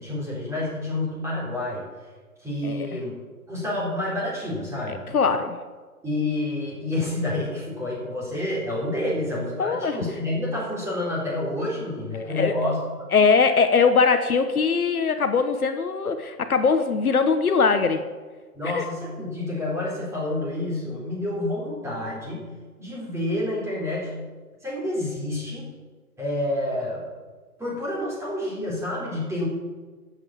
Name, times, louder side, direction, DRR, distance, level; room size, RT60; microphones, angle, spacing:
voice 1, 0.0-1.8 2.4-3.1 3.5-5.0 6.0-12.8 18.5-22.4 22.8-24.2 24.6-25.7 26.2-27.1 27.6-29.5, left 1 dB, 5° right, -5 dB, 4.0 m, -28 dB
voice 2, 2.6-3.0 4.9-5.6 9.6-10.0 12.3-12.5 13.1-18.0 18.6-18.8, left 5 dB, 65° left, 8 dB, 1.3 m, -21 dB
12.5 x 8.2 x 7.5 m, 1.4 s
figure-of-eight pair, 135°, 46 cm